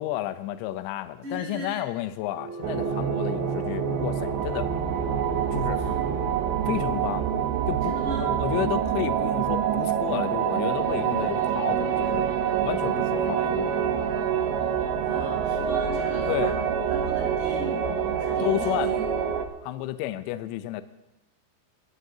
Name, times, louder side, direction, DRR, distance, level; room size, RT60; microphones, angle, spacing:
voice 1, 0.0-4.7 5.5-5.8 6.7-7.3 7.7-7.9 8.2-12.3 12.6-13.7 16.3-16.6 18.4-18.9 19.6-20.8, left 14 dB, 80° left, 11 dB, 2.9 m, -31 dB
voice 2, 1.2-1.9 5.7-6.0 7.8-8.3 15.0-16.5 16.9-19.1, equal, 40° right, -5 dB, 6.5 m, -38 dB
sound 1, 2.1-16.0, right 5 dB, 10° right, 7.3 m, -38 dB
sound 2, 2.6-19.5, right 8 dB, 75° right, 2.7 m, -26 dB
23.0 x 16.0 x 2.8 m, 0.93 s
omnidirectional pair, 5.3 m